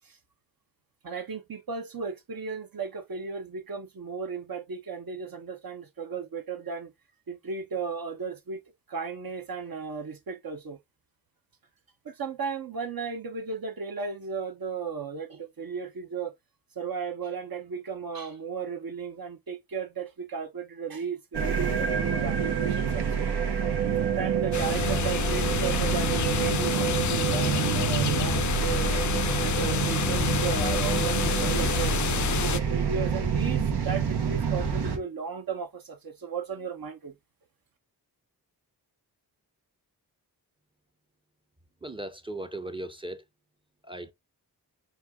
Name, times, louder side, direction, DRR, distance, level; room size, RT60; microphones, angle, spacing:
voice 1, 1.0-6.9 7.3-8.6 8.9-10.8 12.0-16.3 16.8-23.3 23.8-32.0 32.4-37.1, right 5 dB, 65° right, 0.9 m, -35 dB
sound 1, 21.3-35.0, right 7 dB, 90° right, 1.1 m, -27 dB
sound 2, 24.5-32.6, left 9 dB, 50° left, 0.4 m, -29 dB
voice 2, 41.8-43.2 43.8-44.1, right 1 dB, 15° right, 0.6 m, -37 dB
4.5 x 2.4 x 3.4 m
cardioid pair, 60°, 39 cm